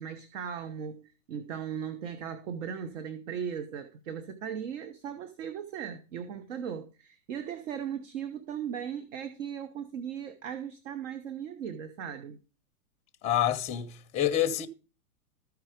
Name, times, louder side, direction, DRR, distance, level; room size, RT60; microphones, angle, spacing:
voice 1, 0.0-12.4, right 8 dB, 60° right, 1.1 m, -38 dB
voice 2, 13.2-14.7, left 11 dB, 15° left, 0.6 m, -27 dB
14.0 x 4.7 x 5.0 m
hypercardioid pair, 120°, 43 cm